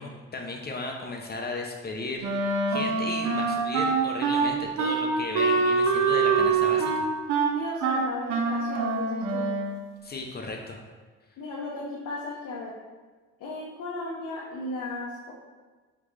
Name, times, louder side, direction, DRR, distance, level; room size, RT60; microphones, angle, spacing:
voice 1, 0.0-7.1 10.0-10.8, left 2 dB, 35° left, 2 dB, 0.5 m, -35 dB
Wind instrument woodwind instrument, 2.2-9.8, right 4 dB, 90° right, 0.7 m, -25 dB
voice 2, 7.5-9.5 11.4-12.8 13.4-15.3, left 2 dB, 80° left, -4 dB, 0.7 m, -35 dB
3.7 x 3.6 x 3.1 m, 1.4 s
cardioid pair, 90°, 30 cm